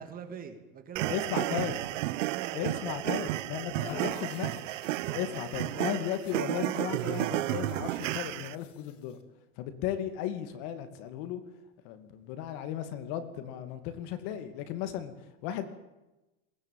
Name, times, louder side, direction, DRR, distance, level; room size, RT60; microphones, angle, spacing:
voice 1, 0.0-1.5 1.8-2.9 3.5-5.4, right 7 dB, 25° right, 8 dB, 2.3 m, -46 dB
sound 1, 1.0-8.6, right 16 dB, 80° right, 1.0 m, -32 dB
voice 2, 1.1-1.7 2.5-4.6 5.1-9.2 9.6-11.4 11.8-15.1 15.4-15.7, left 10 dB, 50° left, 10 dB, 2.5 m, -35 dB
sound 2, 3.8-9.2, left 10 dB, 85° left, 3.2 m, -51 dB
21.5 x 18.5 x 9.3 m, 1.0 s
supercardioid pair, 160°, 37 cm